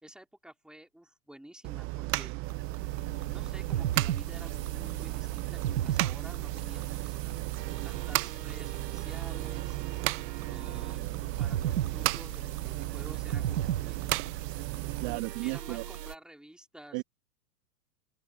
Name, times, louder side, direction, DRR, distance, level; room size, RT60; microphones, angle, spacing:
voice 1, 0.0-2.4 3.3-7.1 7.8-9.8 10.5-11.1 11.4-14.0 15.1-17.0, right 1 dB, ahead, 3.9 m, -51 dB
sound 1, 1.6-15.2, right 23 dB, 25° right, 0.6 m, -35 dB
sound 2, 2.4-16.2, right 11 dB, 85° right, 0.9 m, -36 dB
voice 2, 15.0-15.8 16.9-17.0, right 30 dB, 45° right, 1.7 m, -34 dB
open air
hypercardioid pair, 115°, 47 cm